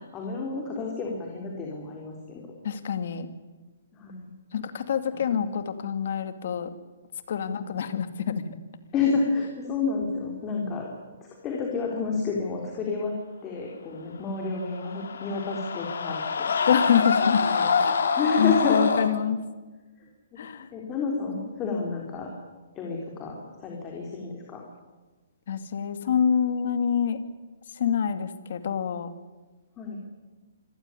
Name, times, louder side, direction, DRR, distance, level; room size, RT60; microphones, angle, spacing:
voice 1, 0.0-2.4 3.9-4.3 5.4-5.5 7.4-7.6 8.9-10.9 11.4-13.1 13.4-16.5 17.4-17.8 18.1-18.8 20.3-20.4 20.7-22.3 22.8-24.6 29.8-30.0, left 4 dB, 20° left, -1 dB, 3.9 m, -30 dB
voice 2, 2.6-3.3 4.5-6.7 7.3-8.5 16.7-18.0 18.4-19.4 20.4-20.7 25.5-27.2 27.7-29.1, left 7 dB, 55° left, 10 dB, 2.3 m, -26 dB
sound 1, 14.6-19.1, left 5 dB, 75° left, 2.8 m, -26 dB
25.5 x 15.5 x 9.8 m, 1.3 s
hypercardioid pair, 160°, 0 cm